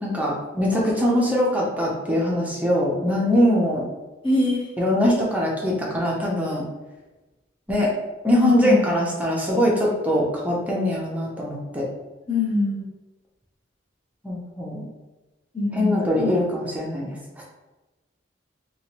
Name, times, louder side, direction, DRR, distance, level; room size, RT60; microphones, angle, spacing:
voice 1, 0.0-3.8 4.8-6.6 7.7-7.9 8.2-11.9 14.2-14.8 15.7-17.4, left 1 dB, 10° right, -4 dB, 0.6 m, -22 dB
voice 2, 4.2-4.6 8.4-9.0 12.3-12.8 15.5-16.3, left 2 dB, 25° left, -5 dB, 0.9 m, -24 dB
3.1 x 2.9 x 2.8 m, 1.1 s
head